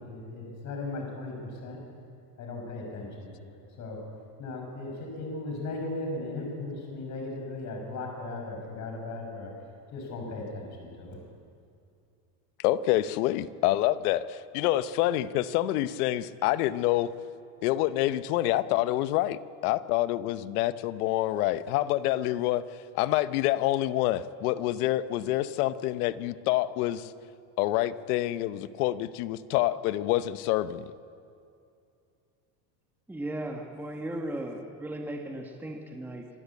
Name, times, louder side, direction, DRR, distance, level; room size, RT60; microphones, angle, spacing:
voice 1, 0.0-1.8 2.4-4.0 4.4-11.2, left 2 dB, 40° left, 1 dB, 5.9 m, -37 dB
voice 2, 12.6-17.1 17.6-22.6 22.9-27.1 27.6-30.9, left 15 dB, 85° left, 14 dB, 0.9 m, -27 dB
voice 3, 33.1-36.3, right 1 dB, 5° right, 2 dB, 1.4 m, -36 dB
25.5 x 13.5 x 8.5 m, 2.5 s
supercardioid pair, 145°, 44 cm